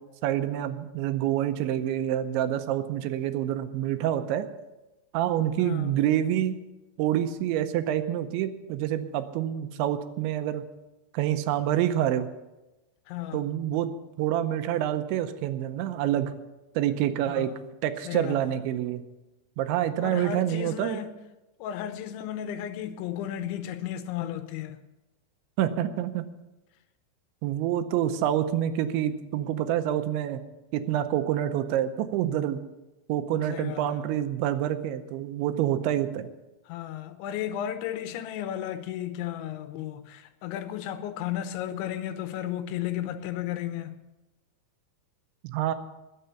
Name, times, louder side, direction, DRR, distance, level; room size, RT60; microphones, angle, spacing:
voice 1, 0.2-4.5 5.1-6.6 7.0-10.6 11.1-12.3 13.3-13.9 14.2-16.3 16.8-17.5 17.8-19.0 19.6-21.0 25.6-26.3 27.4-30.4 30.7-32.6 33.1-36.3 45.4-45.7, right 11 dB, 80° right, 3.0 m, -27 dB
voice 2, 5.6-6.0 13.1-13.5 17.3-17.6 18.1-18.6 20.0-21.2 21.6-24.8 33.3-34.0 36.7-44.0, left 11 dB, 80° left, 3.0 m, -34 dB
20.0 x 6.8 x 6.9 m
omnidirectional pair, 5.4 m